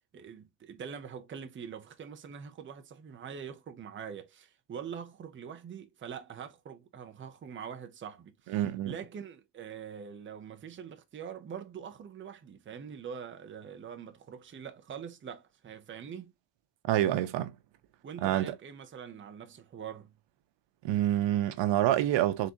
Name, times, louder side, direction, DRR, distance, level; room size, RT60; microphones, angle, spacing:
voice 1, 0.1-8.6 8.9-16.3 18.0-20.1, right 7 dB, 30° right, 0.6 m, -44 dB
voice 2, 8.5-8.9 16.9-17.5 18.2-18.5 20.8-22.5, right 13 dB, 90° right, 0.8 m, -27 dB
4.0 x 3.7 x 2.8 m
cardioid pair, 170°, 43 cm